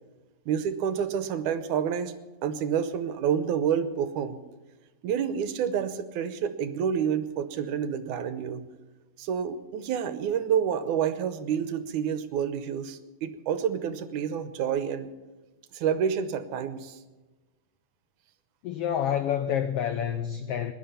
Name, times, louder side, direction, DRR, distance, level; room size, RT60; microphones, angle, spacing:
voice 1, 0.5-2.1 2.4-4.4 5.0-8.6 9.2-15.1 15.7-17.0, right 8 dB, 75° right, 2.3 m, -28 dB
voice 2, 18.6-20.7, left 9 dB, 85° left, 1.3 m, -28 dB
20.5 x 11.0 x 5.7 m
omnidirectional pair, 3.6 m